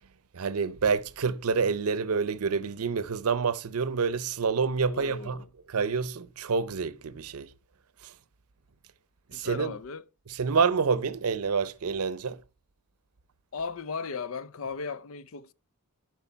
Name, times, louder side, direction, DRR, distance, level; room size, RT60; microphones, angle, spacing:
voice 1, 0.3-5.4 5.7-7.5 8.0-8.1 9.3-9.8 10.3-12.4, right 5 dB, 80° right, 0.6 m, -28 dB
voice 2, 4.9-5.5 9.3-10.1 13.5-15.5, left 5 dB, 65° left, 0.5 m, -36 dB
11.0 x 4.7 x 4.5 m
head